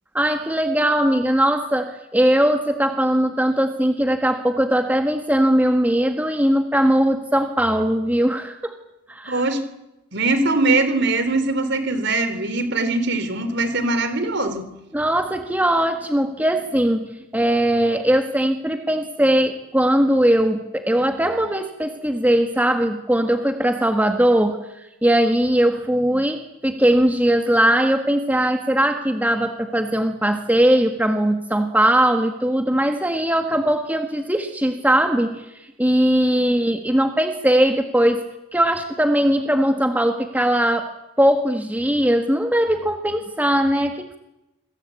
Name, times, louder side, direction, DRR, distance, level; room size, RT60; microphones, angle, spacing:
voice 1, 0.1-8.7 9.1-9.5 14.9-17.1 17.3-24.6 25.0-38.2 38.5-40.9 41.2-44.2, right 1 dB, 5° right, 5 dB, 1.6 m, -20 dB
voice 2, 9.3-9.6 10.1-14.7, right 2 dB, 50° right, 11 dB, 3.7 m, -21 dB
27.0 x 22.0 x 8.6 m, 0.92 s
head